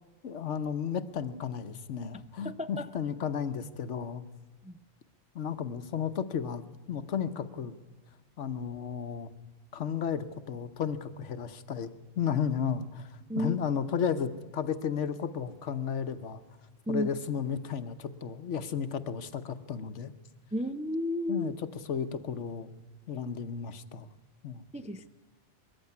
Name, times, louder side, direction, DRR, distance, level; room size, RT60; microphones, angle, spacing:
voice 1, 0.2-4.2 5.3-7.8 8.4-9.3 9.7-11.9 12.2-13.1 13.3-16.4 16.9-20.1 21.3-21.5 21.9-22.7 23.1-24.1 24.4-24.6, left 7 dB, 80° left, 11 dB, 1.3 m, -33 dB
voice 2, 2.1-2.9 4.6-4.8 13.3-13.6 16.9-17.1 20.5-21.5 24.7-25.1, equal, 10° right, 9 dB, 0.4 m, -33 dB
21.5 x 14.5 x 9.4 m, 1.3 s
omnidirectional pair, 1.2 m